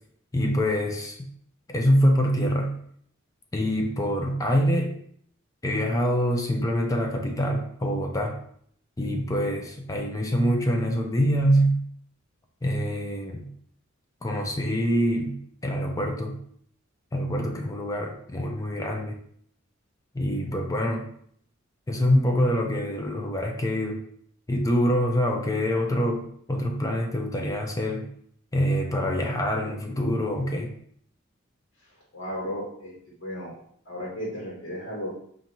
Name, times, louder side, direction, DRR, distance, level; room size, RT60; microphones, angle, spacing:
voice 1, 0.3-1.3 1.7-2.8 3.5-4.9 5.6-8.4 9.0-11.8 12.6-13.5 14.2-16.4 17.1-19.2 20.1-21.1 21.9-24.0 24.5-28.1 28.5-30.7, equal, 15° left, 2 dB, 0.4 m, -25 dB
voice 2, 32.1-32.9 33.2-33.5 33.8-35.1, equal, 70° left, -5 dB, 1.2 m, -34 dB
5.4 x 2.5 x 2.8 m, 0.65 s
head